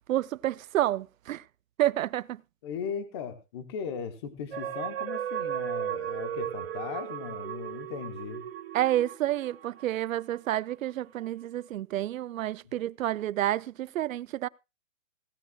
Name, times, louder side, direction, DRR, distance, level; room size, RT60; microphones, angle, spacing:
voice 1, 0.1-1.4 1.8-2.4 8.7-14.5, right 13 dB, 80° right, 0.6 m, -29 dB
voice 2, 2.6-8.4, left 7 dB, 20° left, 0.8 m, -37 dB
sound 1, 4.5-10.2 10.7-10.8, right 10 dB, 45° right, 1.1 m, -35 dB
16.5 x 15.5 x 2.2 m
hypercardioid pair, 170°, 39 cm